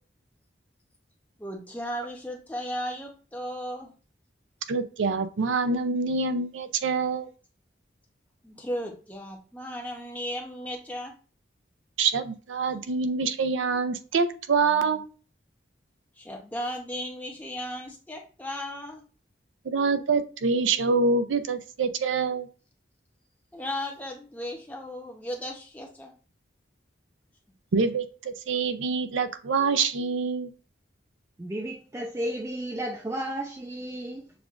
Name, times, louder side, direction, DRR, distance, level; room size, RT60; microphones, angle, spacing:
voice 1, 1.4-3.9 8.4-11.1 16.2-19.0 23.5-26.1, equal, 10° left, 0.7 m, -35 dB
voice 2, 4.7-7.3 12.0-15.1 19.7-22.5 27.7-30.5, right 4 dB, 85° right, 0.5 m, -26 dB
voice 3, 31.4-34.3, right 1 dB, 15° right, 0.3 m, -33 dB
6.8 x 2.4 x 2.4 m
head